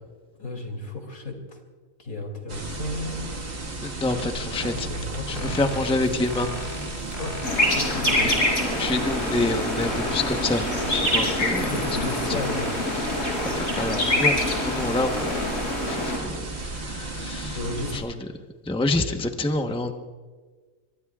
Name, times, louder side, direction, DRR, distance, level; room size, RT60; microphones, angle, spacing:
voice 1, 0.4-1.6 2.0-3.5 4.5-6.3 7.2-7.4 7.7-8.3 11.7-12.6 17.5-17.9, left 2 dB, 80° left, 3 dB, 3.3 m, -34 dB
sound 1, 2.5-18.0, right 2 dB, 50° right, 2.0 m, -34 dB
voice 2, 3.8-4.9 5.3-6.5 8.2-8.4 8.8-10.6 10.9-11.6 13.5-14.3 14.6-15.4 15.9-16.3 16.9-17.6 17.9-18.1 18.7-19.9, left 2 dB, 5° left, 5 dB, 0.9 m, -27 dB
sound 2, 5.3-15.5, left 2 dB, 45° left, 4.4 m, -38 dB
sound 3, 7.4-16.2, left 1 dB, 65° left, 4.6 m, -26 dB
24.5 x 23.0 x 2.4 m, 1.4 s
omnidirectional pair, 1.5 m